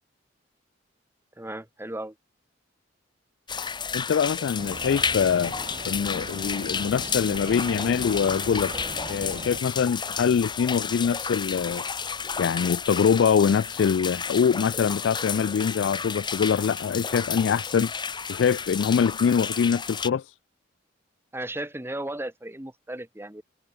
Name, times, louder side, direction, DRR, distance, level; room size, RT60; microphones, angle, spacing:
voice 1, 1.4-2.1 21.3-23.4, right 1 dB, 10° right, 1.3 m, -35 dB
sound 1, 3.5-20.1, left 6 dB, 25° left, 1.1 m, -32 dB
voice 2, 3.9-5.5 5.9-8.8 9.1-11.9 12.4-17.9 18.3-20.2, left 7 dB, 65° left, 0.3 m, -24 dB
sound 2, 4.6-9.6, right 2 dB, 30° right, 6.2 m, -39 dB
head